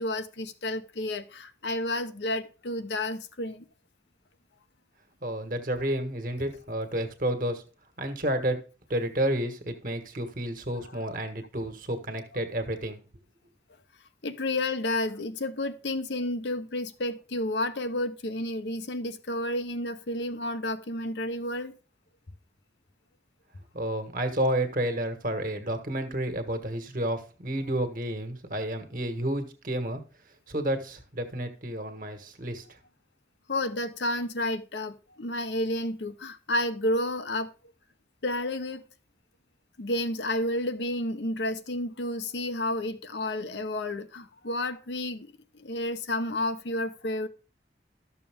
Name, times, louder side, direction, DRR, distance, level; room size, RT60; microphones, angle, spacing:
voice 1, 0.0-3.7 14.2-21.7 33.5-37.5 38.2-38.8 39.8-47.3, left 1 dB, 85° left, 0.9 m, -31 dB
voice 2, 5.2-7.6 8.0-8.6 8.9-13.0 23.7-30.0 30.5-32.6, right 1 dB, 50° right, 1.5 m, -30 dB
12.5 x 6.8 x 3.6 m
head